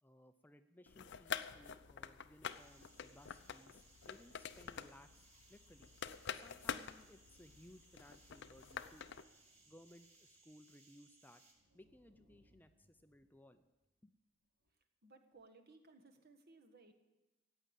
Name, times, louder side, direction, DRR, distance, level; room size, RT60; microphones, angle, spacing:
voice 1, 0.0-5.9 6.3-9.1 9.6-11.4 11.7-13.6 14.0-14.1, left 1 dB, 10° left, 9 dB, 0.5 m, -62 dB
sound 1, 0.9-9.2, left 7 dB, 60° left, 0.6 m, -47 dB
sound 2, 2.4-11.5, right 3 dB, 35° right, 3.0 m, -67 dB
sound 3, 8.4-10.9 11.2-14.1 14.4-14.7, equal, 80° right, 3.2 m, -77 dB
voice 2, 15.0-16.9, right 3 dB, 50° right, 7 dB, 1.5 m, -62 dB
14.5 x 9.1 x 8.2 m, 1.0 s
head